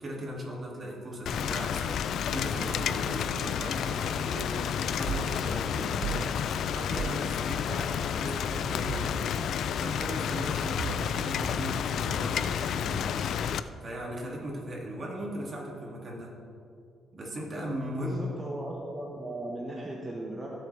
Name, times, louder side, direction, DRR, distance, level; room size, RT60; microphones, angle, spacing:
voice 1, 0.0-13.4 13.8-16.4 17.1-18.2, equal, 40° right, -2 dB, 2.5 m, -38 dB
Rain, 1.3-13.6, left 8 dB, 70° left, 0.4 m, -30 dB
sound 1, 5.1-5.3 6.0-6.3 7.0-7.2 8.9-9.2 10.8-11.3, right 8 dB, 65° right, 0.3 m, -35 dB
voice 2, 18.0-20.5, right 1 dB, 20° right, -3 dB, 1.4 m, -37 dB
16.0 x 7.1 x 3.4 m, 2.4 s
cardioid pair, 90°, 0 cm